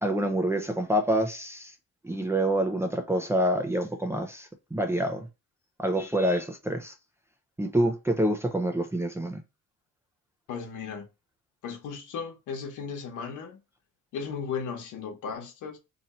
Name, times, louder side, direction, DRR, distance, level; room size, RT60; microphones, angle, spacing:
voice 1, 0.0-1.7 2.0-5.3 5.8-6.9 7.6-9.4, right 1 dB, 10° right, 0.6 m, -27 dB
voice 2, 10.5-11.1 11.6-13.6 14.1-15.8, left 6 dB, 85° left, 1.1 m, -36 dB
2.9 x 2.6 x 4.2 m
cardioid pair, 90°, 30 cm